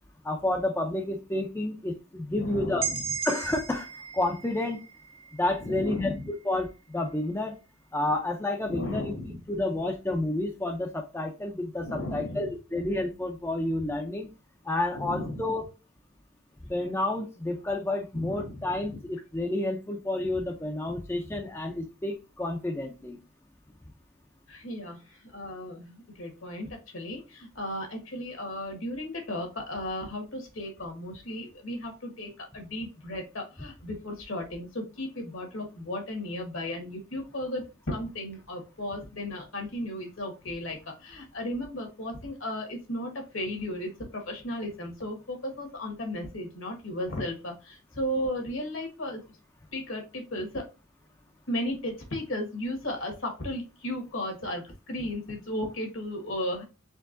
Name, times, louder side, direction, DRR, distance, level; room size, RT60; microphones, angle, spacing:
voice 1, 0.2-2.9 3.2-4.8 5.3-7.5 7.9-9.0 9.5-14.3 14.6-15.6 16.7-23.2, left 1 dB, 10° left, 2 dB, 0.5 m, -30 dB
voice 2, 2.3-3.0 5.6-6.3 8.7-9.4 11.8-12.5 14.9-15.4 18.1-19.0 24.5-49.2 49.7-50.6 51.5-56.6, left 1 dB, 70° left, 3 dB, 1.6 m, -35 dB
sound 1, 2.8-6.6, right 7 dB, 25° right, 0.7 m, -37 dB
4.5 x 3.4 x 2.5 m, 0.30 s
head